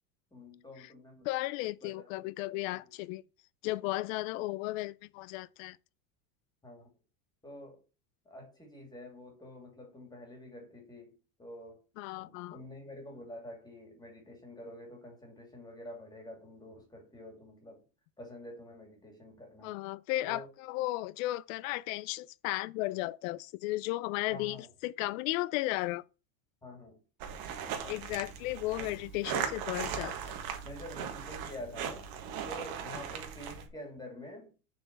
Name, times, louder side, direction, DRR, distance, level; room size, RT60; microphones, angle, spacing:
voice 1, 0.3-1.3 1.8-2.9 6.6-6.9 7.4-7.8 8.3-11.1 11.4-11.8 12.1-17.8 18.2-19.8 20.3-20.5 24.3-24.7 26.6-27.0 27.6-28.3 28.8-28.9 30.2-30.4 30.6-32.1 32.5-34.5, left 1 dB, 10° left, 2.6 m, -48 dB
voice 2, 1.2-3.2 3.6-5.8 12.0-12.6 19.6-26.0 27.9-30.3, left 18 dB, 60° left, 0.5 m, -35 dB
sound 1, 27.2-33.7, right 8 dB, 55° right, 1.6 m, -38 dB
7.1 x 4.4 x 6.7 m
supercardioid pair, 140°, 46 cm